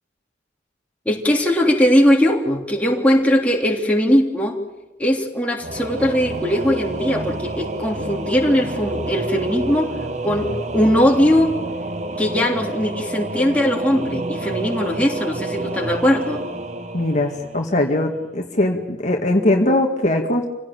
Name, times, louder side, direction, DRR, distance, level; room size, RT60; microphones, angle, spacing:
voice 1, 1.0-4.6 5.0-9.9 10.2-11.5 12.2-16.4, equal, 10° left, -1 dB, 3.3 m, -19 dB
Singing / Musical instrument, 5.6-18.2, right 2 dB, 40° right, 1.3 m, -29 dB
voice 2, 16.9-20.5, left 1 dB, 45° left, 2 dB, 2.1 m, -20 dB
27.5 x 17.0 x 9.1 m, 1.0 s
head